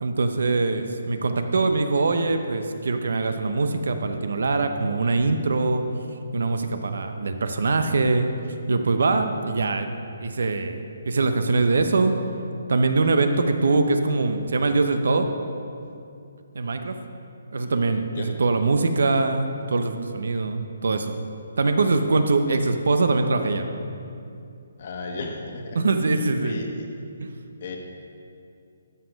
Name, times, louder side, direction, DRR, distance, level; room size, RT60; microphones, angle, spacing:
voice 1, 0.0-5.8 6.3-8.3 8.7-9.9 10.2-10.8 11.0-12.1 12.7-15.3 16.5-16.9 17.5-21.2 21.6-23.7 25.7-26.6 27.2-27.3, right 3 dB, 70° right, 7 dB, 0.8 m, -23 dB
voice 2, 24.8-25.8 26.2-26.9 27.6-27.8, left 3 dB, 40° left, 2 dB, 1.3 m, -34 dB
12.5 x 6.2 x 5.3 m, 2.6 s
hypercardioid pair, 175°, 0 cm